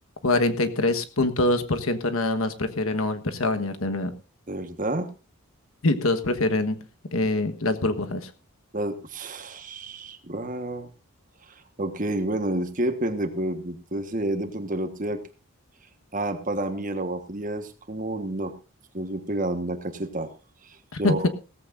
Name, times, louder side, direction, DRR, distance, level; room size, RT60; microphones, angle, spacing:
voice 1, 0.2-4.1 5.8-6.8 7.1-8.3 20.9-21.3, left 2 dB, 70° left, 8 dB, 1.3 m, -24 dB
voice 2, 4.5-5.1 8.7-10.9 11.5-15.2 16.1-18.5 18.9-20.3 20.6-21.3, right 1 dB, 35° right, 8 dB, 1.4 m, -30 dB
17.5 x 14.5 x 2.6 m, 0.31 s
head